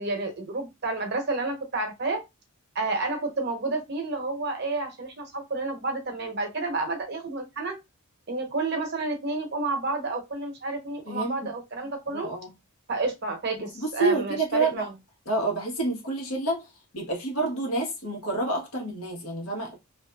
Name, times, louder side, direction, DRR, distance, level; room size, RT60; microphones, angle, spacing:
voice 1, 0.0-2.2 2.7-7.8 8.3-12.3 12.9-14.9, right 3 dB, 50° right, 0.8 m, -30 dB
voice 2, 12.1-12.5 13.8-14.9 15.2-19.8, right 2 dB, 80° left, 1.2 m, -28 dB
2.6 x 2.4 x 2.2 m
head